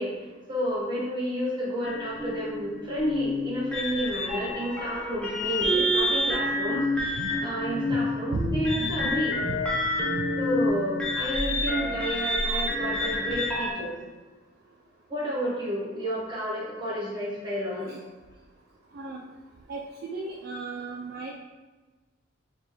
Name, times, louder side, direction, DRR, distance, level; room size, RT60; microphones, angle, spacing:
voice 1, 0.0-9.4 10.4-13.9 15.1-17.9, equal, 20° right, -5 dB, 1.1 m, -31 dB
sound 1, 1.8-13.7, left 1 dB, 5° left, 0.6 m, -28 dB
voice 2, 7.2-8.0 8.3-9.2 9.4-9.6 10.1-10.2 17.8-18.0 18.9-19.2 19.7-21.3, right 3 dB, 45° right, -1 dB, 0.3 m, -34 dB
5.3 x 2.4 x 3.0 m, 1.2 s
head